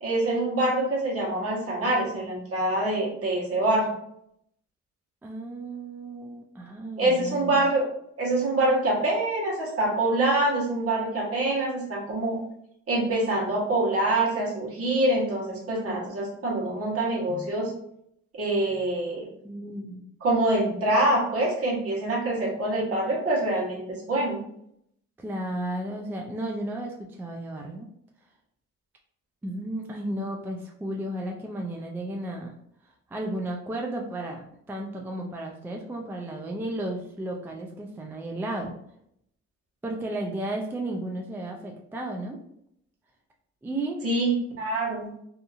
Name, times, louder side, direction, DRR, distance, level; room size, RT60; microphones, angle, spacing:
voice 1, 0.0-3.9 7.0-7.9 8.2-12.4 12.9-17.7 18.3-19.3 20.2-24.4 44.0-45.1, right 2 dB, 50° right, -3 dB, 1.2 m, -25 dB
voice 2, 5.2-7.7 19.4-20.0 25.2-27.9 29.4-32.5 32.8-34.4 34.7-38.8 39.8-42.4 43.6-44.0, right 1 dB, 5° right, 1 dB, 0.3 m, -33 dB
2.8 x 2.5 x 2.4 m, 0.73 s
cardioid pair, 90°, 30 cm